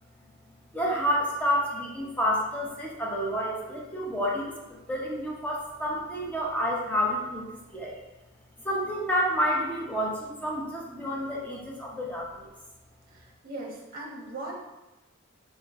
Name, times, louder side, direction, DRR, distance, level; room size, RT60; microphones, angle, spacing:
voice 1, 0.7-8.0 8.6-12.5, equal, 10° left, -4 dB, 0.7 m, -29 dB
voice 2, 13.1-14.6, right 2 dB, 45° right, -2 dB, 0.8 m, -39 dB
4.3 x 2.9 x 2.4 m, 1.0 s
head